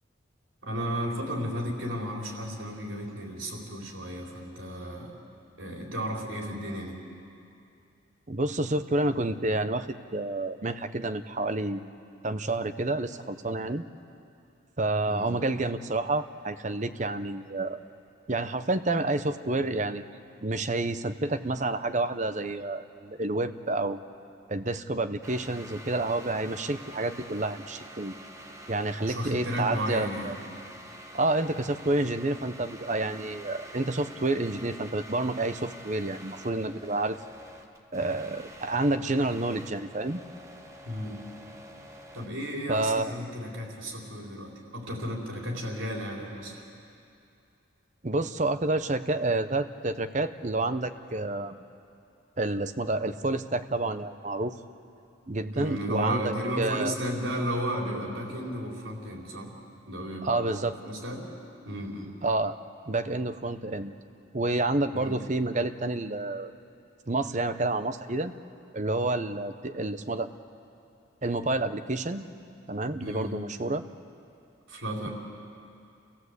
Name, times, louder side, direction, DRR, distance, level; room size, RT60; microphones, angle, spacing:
voice 1, 0.6-5.1 5.6-7.0 15.1-15.3 29.0-30.3 40.8-41.2 42.1-46.6 55.5-59.5 59.9-61.3 61.6-62.1 64.9-65.2 73.0-73.4 74.7-75.1, equal, 80° right, -1 dB, 4.3 m, -34 dB
voice 2, 8.3-11.9 12.2-13.8 14.8-17.8 18.3-20.0 20.4-24.0 24.5-28.1 28.7-30.4 31.1-37.2 37.9-40.2 42.7-43.1 48.0-51.6 52.4-54.6 55.3-57.0 60.2-60.7 62.2-62.6 62.9-63.9 64.3-66.5 67.1-68.3 68.7-70.3 71.2-72.2 72.7-73.8, right 2 dB, 35° right, 9 dB, 0.8 m, -29 dB
sound 1, 25.2-42.3, right 1 dB, 15° right, 1.3 m, -47 dB
28.5 x 16.0 x 8.1 m, 2.6 s
head